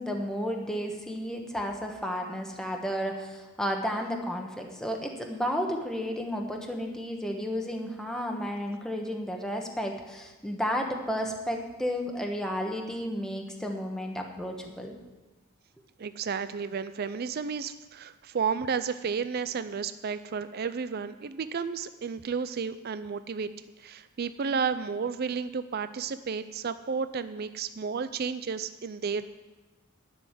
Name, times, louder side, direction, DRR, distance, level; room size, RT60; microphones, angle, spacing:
voice 1, 0.0-14.9, equal, 5° left, 2 dB, 1.3 m, -32 dB
voice 2, 16.0-23.5 23.8-29.3, right 6 dB, 45° right, 12 dB, 0.4 m, -32 dB
11.0 x 6.2 x 9.1 m, 1.1 s
head